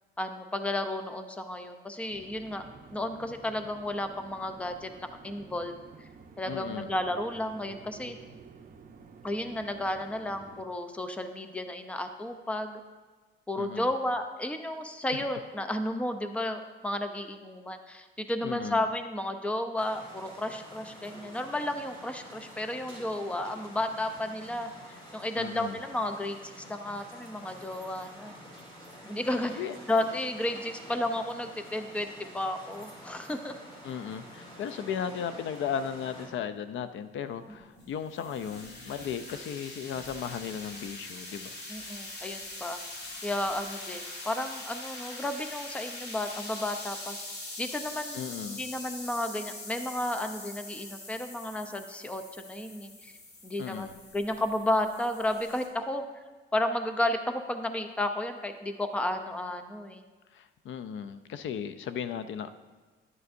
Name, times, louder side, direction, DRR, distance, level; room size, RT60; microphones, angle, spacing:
voice 1, 0.2-2.6 2.9-6.1 6.4-8.2 9.2-12.8 13.5-28.3 29.0-29.5 29.9-33.5 41.7-42.8 43.2-47.2 47.6-53.1 53.4-56.0 56.5-60.0, left 1 dB, 5° left, 7 dB, 0.5 m, -33 dB
sound 1, 2.1-10.7, right 5 dB, 40° right, 0.8 m, -51 dB
voice 2, 6.5-6.9 13.6-13.9 18.4-18.8 25.4-25.8 29.6-29.7 33.8-41.6 48.1-48.6 53.6-54.0 60.3-62.5, left 8 dB, 70° left, 11 dB, 0.5 m, -36 dB
sound 2, 19.8-36.3, equal, 25° left, 2.4 m, -48 dB
sound 3, 37.5-55.7, left 2 dB, 55° left, 1.7 m, -43 dB
12.0 x 9.5 x 2.6 m, 1.3 s
cardioid pair, 135°, 21 cm